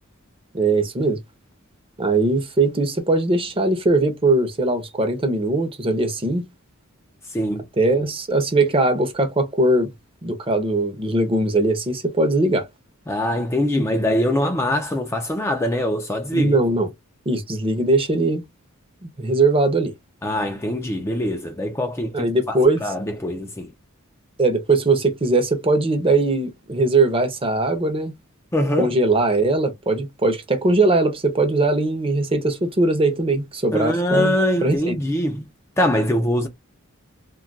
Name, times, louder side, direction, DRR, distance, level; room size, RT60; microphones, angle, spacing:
voice 1, 0.5-1.2 2.0-6.5 7.8-9.9 10.2-12.7 16.3-16.9 17.3-18.4 19.2-19.9 22.1-22.8 24.4-28.1 28.8-34.4 34.6-34.9, right 2 dB, 25° right, 0.6 m, -20 dB
voice 2, 7.2-7.7 13.1-16.6 20.2-23.7 28.5-28.9 33.7-35.4 35.8-36.5, left 1 dB, 10° left, 0.3 m, -23 dB
2.3 x 2.2 x 3.8 m
head